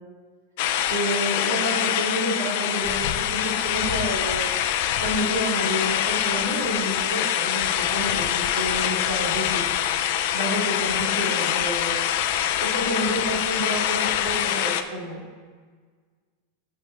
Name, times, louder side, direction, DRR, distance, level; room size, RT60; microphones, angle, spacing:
sound 1, 0.6-14.8, left 10 dB, 65° left, 0.5 m, -25 dB
voice 1, 0.9-4.6 5.0-9.6 10.3-12.0 12.6-15.2, equal, 90° right, -3 dB, 2.5 m, -29 dB
7.0 x 5.5 x 5.0 m, 1.5 s
hypercardioid pair, 115°, 0 cm